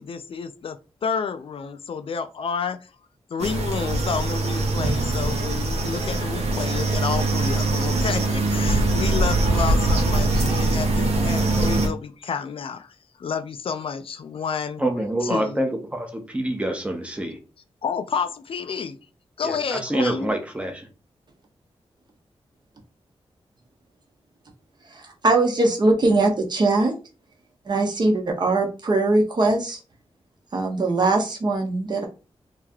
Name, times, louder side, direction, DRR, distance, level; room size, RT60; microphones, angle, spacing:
voice 1, 0.0-2.8 3.3-14.8 15.2-15.6 17.8-19.0 19.4-20.3, left 6 dB, 60° left, 0.4 m, -30 dB
sound 1, 3.4-11.9, right 2 dB, 90° right, 1.0 m, -22 dB
voice 2, 14.8-17.4 19.4-20.9, right 1 dB, 10° right, 0.7 m, -26 dB
voice 3, 25.0-26.9 27.7-29.8 30.5-32.1, right 2 dB, 45° right, 0.9 m, -21 dB
3.1 x 2.8 x 3.5 m
wide cardioid pair, 145°, 11 cm